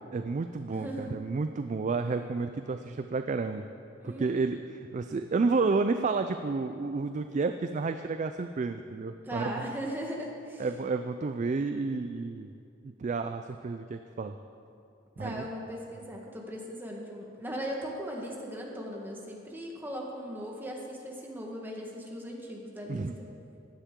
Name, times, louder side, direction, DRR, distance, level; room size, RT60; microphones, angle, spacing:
voice 1, 0.1-3.6 4.0-9.7 10.6-12.5 12.8-14.4 15.2-15.4 22.9-23.1, right 4 dB, 40° right, 8 dB, 0.3 m, -31 dB
voice 2, 0.7-1.2 4.0-4.4 9.2-10.7 15.2-23.1, equal, 10° right, -1 dB, 1.5 m, -38 dB
15.0 x 10.0 x 3.7 m, 2.6 s
head